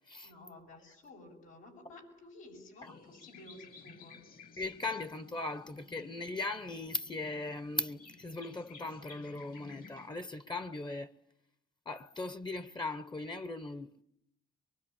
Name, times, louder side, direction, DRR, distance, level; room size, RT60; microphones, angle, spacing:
voice 1, 0.2-4.2, left 2 dB, 85° left, 7.9 m, -53 dB
sound 1, 2.8-10.1, left 5 dB, 45° left, 1.8 m, -55 dB
voice 2, 4.6-11.1 11.9-14.0, left 2 dB, 20° left, 1.0 m, -38 dB
24.0 x 23.5 x 10.0 m
cardioid pair, 90°, 20 cm